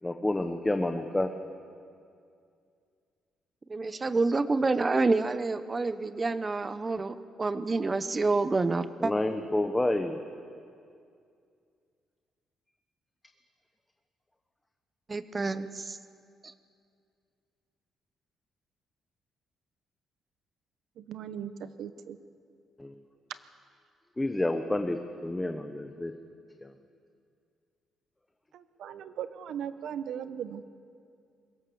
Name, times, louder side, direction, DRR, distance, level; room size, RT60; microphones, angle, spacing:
voice 1, 0.0-1.3 9.0-10.2 22.8-22.9 24.2-26.1 26.6-26.7, left 1 dB, 15° left, 6 dB, 1.1 m, -29 dB
voice 2, 3.7-9.1 15.1-16.0 16.4-16.5, right 3 dB, 25° right, 13 dB, 0.9 m, -28 dB
voice 3, 21.0-22.2 28.5-30.6, right 8 dB, 75° right, 12 dB, 1.0 m, -38 dB
22.0 x 17.5 x 7.0 m, 2.3 s
cardioid pair, 90°, 0 cm